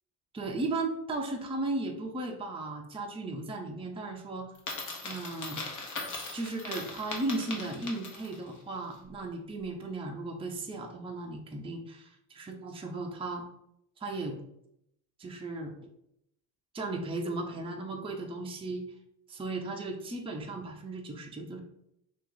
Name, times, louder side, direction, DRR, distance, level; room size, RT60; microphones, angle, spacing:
voice 1, 0.3-4.5 5.0-5.6 6.3-13.4 14.0-14.4 15.2-15.7 16.7-18.8 19.3-21.6, right 2 dB, 10° right, 1 dB, 0.6 m, -36 dB
Coin (dropping), 4.6-8.5, left 3 dB, 40° left, 1.2 m, -39 dB
2.9 x 2.5 x 3.8 m, 0.77 s
hypercardioid pair, 70°, 45 cm